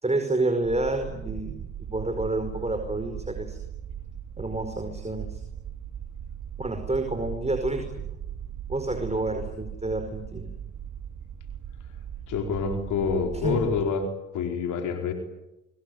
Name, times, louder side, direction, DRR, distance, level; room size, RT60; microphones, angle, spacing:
voice 1, 0.0-3.6 4.4-5.4 6.6-8.0 8.7-10.5 13.4-13.6, right 2 dB, 20° right, 6 dB, 5.0 m, -29 dB
sound 1, 0.6-13.8, right 9 dB, 70° right, 2.2 m, -38 dB
voice 2, 12.3-14.1 14.3-15.1, left 5 dB, 85° left, 5 dB, 4.7 m, -27 dB
26.0 x 22.5 x 9.4 m, 0.90 s
supercardioid pair, 50°, 30 cm